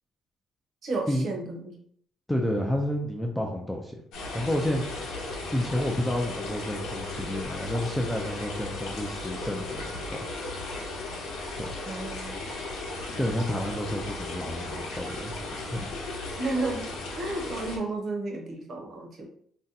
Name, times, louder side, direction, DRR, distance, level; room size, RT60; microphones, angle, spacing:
voice 1, 0.8-1.8 11.9-12.4 16.4-16.9 17.2-19.3, right 2 dB, 45° right, 1 dB, 0.8 m, -32 dB
voice 2, 2.3-4.0 4.3-4.8 5.5-10.2 11.6-11.7 13.2-15.4 15.7-15.9, left 1 dB, 5° left, 0 dB, 0.3 m, -30 dB
sound 1, 4.1-17.8, left 2 dB, 85° left, 0.8 m, -36 dB
2.7 x 2.1 x 3.8 m, 0.63 s
cardioid pair, 165°, 0 cm